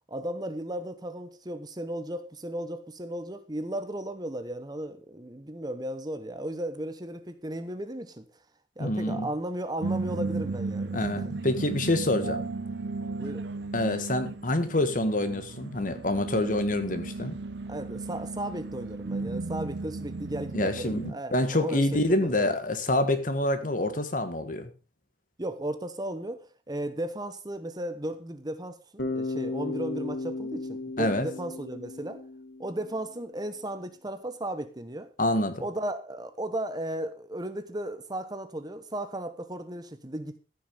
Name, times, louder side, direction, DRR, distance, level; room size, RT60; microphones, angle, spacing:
voice 1, 0.1-8.2 8.8-11.0 13.2-13.4 17.7-22.5 25.4-32.2 32.6-35.1 35.6-40.4, right 1 dB, 20° right, 1.0 m, -35 dB
voice 2, 8.8-9.3 10.9-12.4 13.7-17.4 20.5-24.7 31.0-31.3 35.2-35.6, left 1 dB, 45° left, 1.6 m, -27 dB
sound 1, 9.8-21.1, right 3 dB, 70° right, 0.6 m, -35 dB
Bass guitar, 29.0-33.0, left 2 dB, 80° left, 1.9 m, -35 dB
14.5 x 6.3 x 5.3 m
head